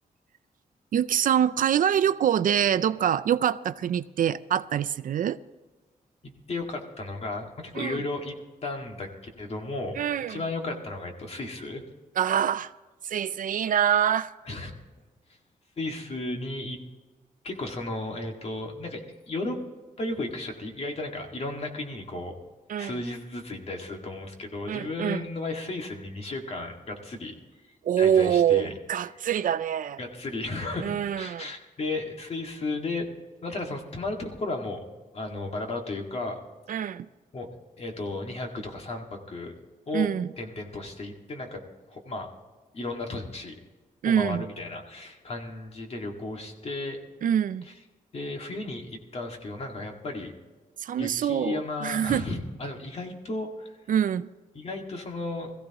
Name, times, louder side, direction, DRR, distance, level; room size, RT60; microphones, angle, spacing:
voice 1, 0.9-5.4 7.8-8.0 10.0-10.4 12.2-12.7 13.0-14.3 22.7-22.9 24.7-25.2 27.8-30.0 30.8-31.5 36.7-37.1 39.9-40.3 44.0-44.4 47.2-47.7 50.8-52.2 53.9-54.3, right 9 dB, 65° right, 0.4 m, -25 dB
voice 2, 6.2-8.4 8.6-10.0 10.3-11.8 14.4-14.7 15.8-16.8 17.4-19.6 20.0-22.4 22.7-27.4 27.6-28.7 30.0-33.1 33.4-34.9 35.1-36.4 36.7-37.0 37.3-37.5 37.8-39.5 39.9-40.1 40.4-42.3 42.7-43.5 44.1-47.0 47.6-47.8 48.1-50.3 51.0-53.8 54.5-55.5, left 2 dB, 45° left, 2.0 m, -34 dB
21.5 x 15.0 x 3.0 m
wide cardioid pair, 165°, 15 cm